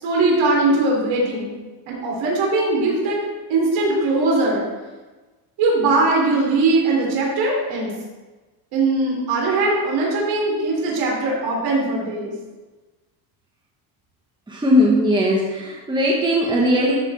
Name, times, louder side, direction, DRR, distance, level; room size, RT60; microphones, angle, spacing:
voice 1, 0.0-1.5 1.9-3.2 3.5-4.6 5.6-7.9 8.7-12.3, right 2 dB, 70° right, -3 dB, 3.5 m, -20 dB
voice 2, 14.5-17.0, equal, 10° right, -3 dB, 1.3 m, -18 dB
13.5 x 6.8 x 3.5 m, 1.2 s
cardioid pair, 145°, 47 cm